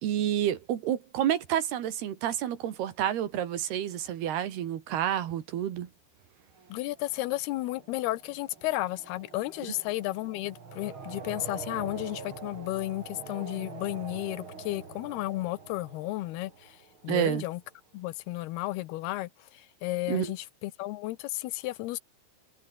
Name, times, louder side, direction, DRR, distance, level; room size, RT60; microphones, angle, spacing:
voice 1, 0.0-5.9 17.1-17.4 20.1-20.3, right 10 dB, 80° right, 4.0 m, -29 dB
sound 1, 6.5-17.4, right 5 dB, 35° right, 3.7 m, -45 dB
voice 2, 6.7-16.8 17.0-17.6 17.9-22.0, left 17 dB, 85° left, 2.8 m, -33 dB
omnidirectional pair, 4.5 m